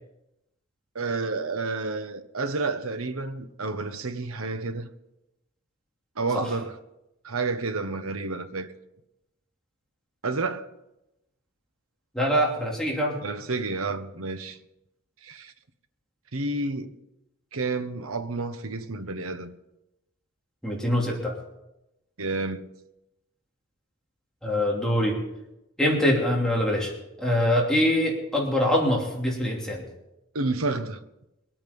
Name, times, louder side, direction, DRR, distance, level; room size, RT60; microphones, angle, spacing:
voice 1, 0.9-4.9 6.2-6.8 7.2-8.7 10.2-10.6 13.2-14.6 15.2-15.5 16.3-16.9 17.5-19.5 22.2-22.7 30.3-31.0, right 3 dB, 85° right, 1.1 m, -30 dB
voice 2, 12.1-13.2 20.6-21.3 24.4-25.2 25.8-26.9 27.2-29.8, equal, 5° left, 2.9 m, -24 dB
23.0 x 8.9 x 5.4 m
head